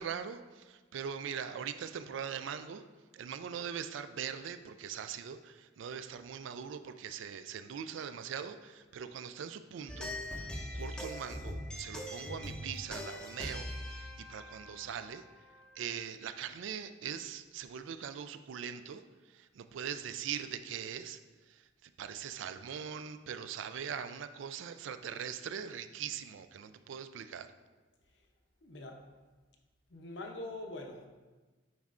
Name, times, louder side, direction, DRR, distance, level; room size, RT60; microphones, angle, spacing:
voice 1, 0.0-2.8 3.1-15.2 15.8-19.0 19.3-21.2 21.5-27.5, right 8 dB, 75° right, 11 dB, 0.3 m, -41 dB
sound 1, 9.9-15.7, left 1 dB, 5° left, 0.5 m, -42 dB
voice 2, 28.6-29.0 29.9-31.1, left 2 dB, 65° left, 3 dB, 0.7 m, -43 dB
9.3 x 4.2 x 2.5 m, 1.3 s
head